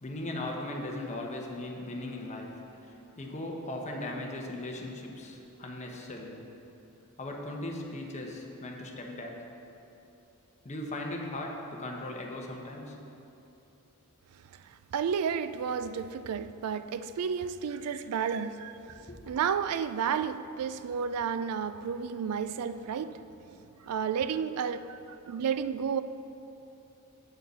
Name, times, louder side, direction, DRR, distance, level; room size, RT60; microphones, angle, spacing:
voice 1, 0.0-6.5 7.2-9.5 10.6-13.0 19.1-19.2 23.8-23.9, left 1 dB, 30° left, 0.9 m, -38 dB
voice 2, 14.5-23.2 23.8-26.0, right 7 dB, 75° right, 0.3 m, -32 dB
7.7 x 4.6 x 6.8 m
head